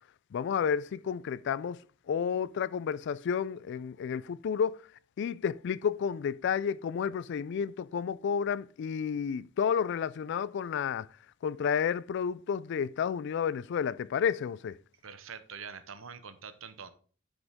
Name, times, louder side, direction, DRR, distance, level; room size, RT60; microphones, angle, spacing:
voice 1, 0.3-1.8 2.1-4.8 5.2-11.1 11.4-14.7, left 7 dB, 60° left, 0.3 m, -31 dB
voice 2, 15.0-16.9, right 6 dB, 75° right, 0.8 m, -45 dB
9.7 x 5.1 x 3.6 m
head